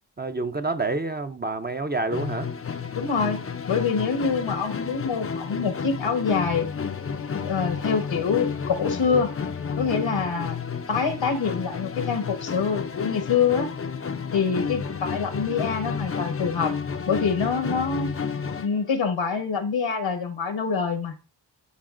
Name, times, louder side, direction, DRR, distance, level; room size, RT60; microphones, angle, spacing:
voice 1, 0.2-2.5, right 3 dB, 20° right, 0.6 m, -28 dB
Musical instrument, 2.1-18.8, left 6 dB, 30° left, 0.5 m, -31 dB
voice 2, 2.9-6.7 7.3-9.3 9.8-10.6 10.9-13.7 14.3-16.7 17.1-18.1 18.5-21.1, left 5 dB, 80° left, 1.3 m, -25 dB
11.5 x 4.0 x 2.5 m
cardioid pair, 45°, 44 cm